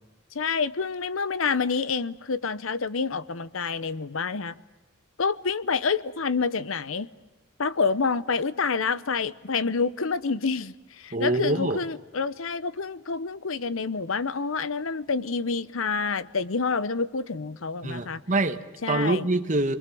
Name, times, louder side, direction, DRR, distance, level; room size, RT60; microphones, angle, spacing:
voice 1, 0.3-4.5 5.2-7.1 7.6-18.2 18.8-19.3, left 5 dB, 75° left, 0.8 m, -28 dB
voice 2, 11.1-11.8 17.8-19.8, right 2 dB, 35° right, 1.4 m, -25 dB
29.0 x 21.5 x 7.7 m
head